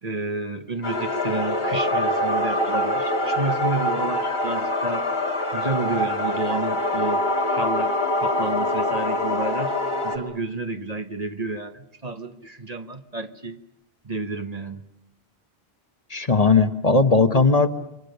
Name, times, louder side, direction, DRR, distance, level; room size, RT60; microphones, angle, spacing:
voice 1, 0.0-5.1 5.5-9.7 10.0-13.6 14.0-14.8, right 3 dB, 40° right, 7 dB, 1.2 m, -30 dB
sound 1, 0.8-10.2, left 1 dB, 70° left, 3.4 m, -24 dB
voice 2, 16.1-17.7, left 4 dB, 40° left, 7 dB, 1.3 m, -18 dB
28.5 x 24.5 x 6.7 m, 0.85 s
omnidirectional pair, 1.1 m